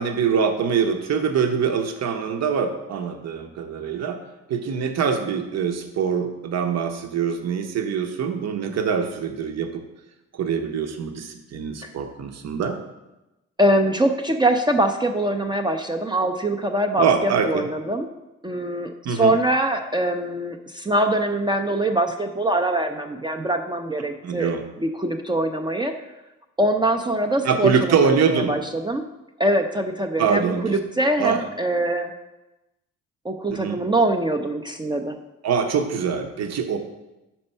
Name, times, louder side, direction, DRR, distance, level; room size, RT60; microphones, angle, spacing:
voice 1, 0.0-4.2 4.5-9.8 10.3-12.8 17.0-17.7 19.0-19.3 24.2-24.6 27.4-28.5 30.2-30.7 31.2-31.4 33.5-33.8 35.4-36.8, right 6 dB, 60° right, 6 dB, 0.8 m, -24 dB
voice 2, 13.6-18.1 18.4-24.5 24.8-25.9 26.6-29.0 29.4-32.1 33.2-35.2, right 1 dB, 15° right, 3 dB, 0.4 m, -23 dB
5.3 x 4.4 x 5.4 m, 0.98 s
cardioid pair, 90°, 30 cm